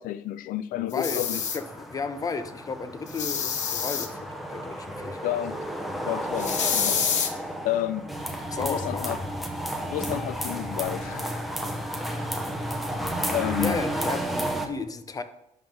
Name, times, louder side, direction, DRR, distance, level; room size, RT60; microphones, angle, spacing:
voice 1, 0.0-1.4 5.2-5.6 6.0-7.0 7.6-8.1 8.6-9.2 9.8-11.6 13.3-13.8, left 13 dB, 85° left, 15 dB, 0.4 m, -31 dB
voice 2, 0.8-5.3 8.5-9.3 13.5-15.2, left 4 dB, 25° left, 10 dB, 0.6 m, -33 dB
sound 1, 0.9-1.6 3.1-4.1 6.4-7.3, left 7 dB, 60° left, 1.0 m, -27 dB
sound 2, 1.1-14.7, right 1 dB, ahead, 0.9 m, -32 dB
10.5 x 3.7 x 5.3 m, 0.88 s
cardioid pair, 130°, 14 cm